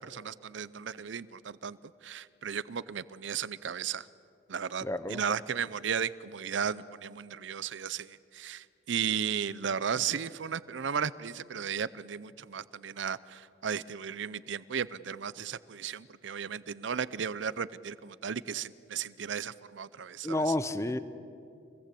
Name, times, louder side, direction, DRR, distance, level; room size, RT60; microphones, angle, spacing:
voice 1, 0.0-1.8 2.0-4.1 4.5-20.5, right 7 dB, 75° right, 18 dB, 0.6 m, -35 dB
voice 2, 4.8-5.2 20.2-21.0, left 1 dB, 15° left, 13 dB, 0.8 m, -30 dB
25.5 x 21.0 x 8.4 m, 2.5 s
head